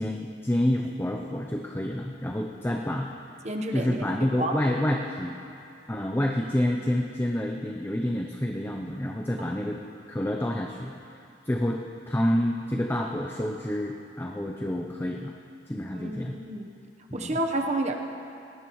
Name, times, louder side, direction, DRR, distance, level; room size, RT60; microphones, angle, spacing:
voice 1, 0.0-3.1 3.7-5.3 5.9-9.8 10.1-11.0 11.4-15.3 15.7-16.4 17.1-17.4, left 1 dB, 10° left, 1 dB, 0.6 m, -28 dB
voice 2, 3.4-4.0 4.3-4.6 9.5-9.6 15.9-16.7 17.1-17.9, right 1 dB, 40° right, 3 dB, 1.0 m, -30 dB
19.5 x 17.5 x 3.1 m, 2.6 s
head